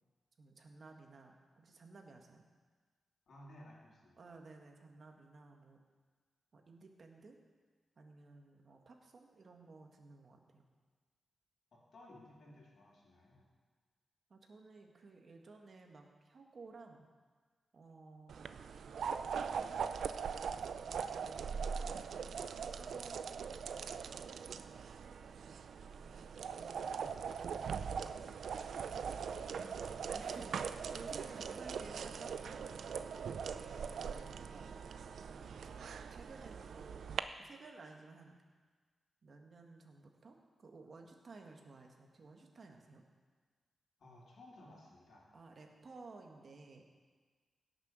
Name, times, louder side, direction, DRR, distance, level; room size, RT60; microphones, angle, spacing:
voice 1, 0.4-2.4 4.2-5.8 6.5-7.4 8.0-10.6 14.3-17.1 17.7-18.4 19.4-22.4 22.7-23.3 25.9-28.1 30.0-34.8 35.2-37.0 37.4-38.4 39.2-43.0 45.3-46.8, right 3 dB, 50° right, 2 dB, 1.6 m, -56 dB
voice 2, 3.3-4.3 11.7-13.5 29.0-29.9 31.6-31.7 44.0-45.3, left 1 dB, 65° left, -3 dB, 3.2 m, -58 dB
sound 1, 18.3-37.2, right 6 dB, 80° right, 0.4 m, -41 dB
16.5 x 7.0 x 6.2 m, 1.5 s
wide cardioid pair, 110°, 0 cm